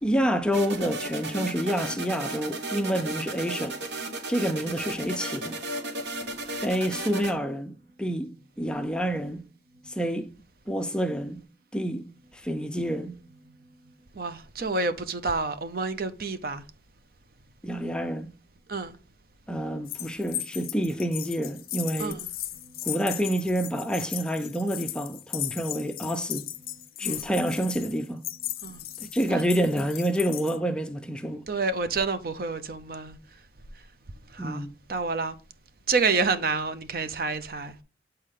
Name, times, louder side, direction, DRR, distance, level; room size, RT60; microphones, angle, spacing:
voice 1, 0.0-3.8 4.3-5.6 6.6-9.4 9.9-10.3 10.7-11.4 11.7-12.1 12.3-13.2 17.6-18.3 19.5-22.2 22.8-26.5 27.0-28.2 29.1-31.4 34.4-34.7, equal, 5° left, 0.4 m, -28 dB
sound 1, 0.5-7.3, right 2 dB, 70° right, 1.1 m, -34 dB
voice 2, 14.1-16.6 18.7-19.0 22.0-22.3 27.0-27.3 28.6-28.8 29.3-29.5 31.5-33.2 34.3-34.6 34.9-35.3 35.9-37.8, right 4 dB, 50° right, 0.6 m, -28 dB
sound 2, 19.9-30.6, left 14 dB, 50° left, 0.6 m, -37 dB
8.2 x 4.4 x 3.6 m
head